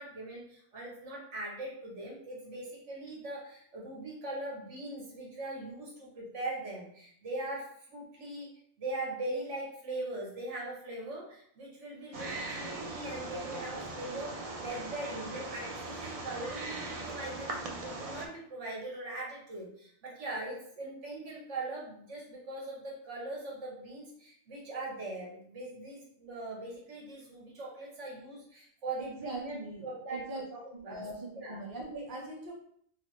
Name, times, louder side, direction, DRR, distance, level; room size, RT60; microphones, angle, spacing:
voice 1, 0.0-8.5 8.8-30.2 30.5-31.0 31.4-31.6, right 2 dB, 80° right, -3 dB, 1.4 m, -41 dB
Wild animals, 12.1-18.3, right 2 dB, 65° right, 0.3 m, -40 dB
voice 2, 28.9-30.4 30.9-32.5, right 2 dB, 20° right, -3 dB, 0.7 m, -41 dB
4.0 x 2.0 x 3.1 m, 0.65 s
omnidirectional pair, 1.2 m